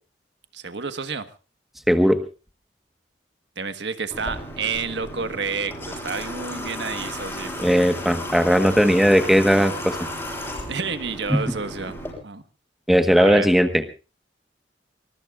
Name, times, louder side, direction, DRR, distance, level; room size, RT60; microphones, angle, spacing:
voice 1, 0.5-1.3 3.6-7.6 10.7-11.9 12.2-12.4 13.1-13.5, right 5 dB, 80° right, 9 dB, 1.4 m, -30 dB
voice 2, 1.9-2.2 7.6-10.0 11.3-11.4 12.9-13.7, equal, ahead, 8 dB, 1.2 m, -17 dB
Water / Water tap faucet, 4.1-12.1, equal, 15° left, 7.1 m, -34 dB
24.0 x 21.5 x 2.4 m, 0.33 s
head